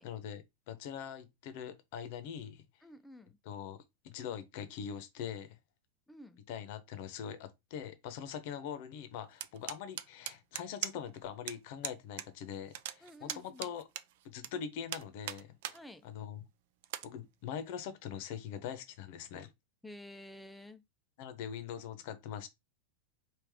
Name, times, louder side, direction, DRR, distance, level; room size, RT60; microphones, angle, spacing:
voice 1, 0.0-2.6 3.4-3.8 4.0-5.6 6.5-13.8 14.2-15.8 16.0-16.4 17.0-19.5 21.2-22.5, left 8 dB, 55° left, 0.7 m, -43 dB
voice 2, 2.8-3.4 6.1-6.4 13.0-13.7 15.7-16.1 19.8-20.8, left 1 dB, 5° left, 0.5 m, -51 dB
sound 1, 9.4-11.2 11.5-11.6 11.8-12.3 12.5-14.5 14.9-15.8 16.2-16.3 16.8-17.1, right 12 dB, 60° right, 0.3 m, -40 dB
3.4 x 2.4 x 3.5 m
hypercardioid pair, 95°, 0 cm